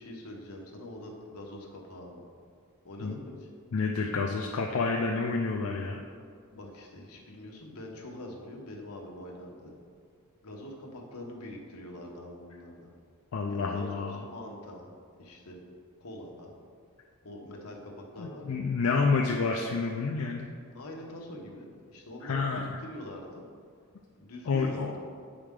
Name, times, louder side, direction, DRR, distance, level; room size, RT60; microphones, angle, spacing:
voice 1, 0.0-2.3 2.8-3.5 6.5-9.8 10.4-12.9 13.5-15.6 16.0-16.5 17.2-18.6 20.7-23.4 24.2-25.0, left 1 dB, 85° left, 0 dB, 1.1 m, -44 dB
voice 2, 3.7-6.0 13.3-14.2 18.2-20.5 22.2-22.8 24.5-24.9, left 4 dB, 65° left, 0 dB, 0.5 m, -29 dB
8.1 x 5.0 x 3.7 m, 2.2 s
head